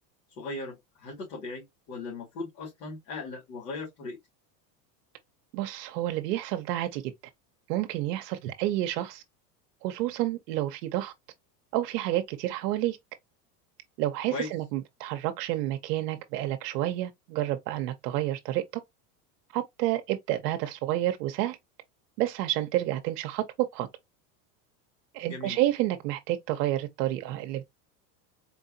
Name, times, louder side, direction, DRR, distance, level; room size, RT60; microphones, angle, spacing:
voice 1, 0.4-4.2 14.3-14.5 25.3-25.6, left 3 dB, 85° left, 2.5 m, -38 dB
voice 2, 5.5-7.1 7.7-9.2 9.8-11.1 11.7-13.0 14.0-18.6 19.5-21.6 22.2-23.9 25.1-27.7, right 14 dB, 75° right, 0.8 m, -29 dB
4.4 x 2.7 x 2.6 m
supercardioid pair, 130°, 48 cm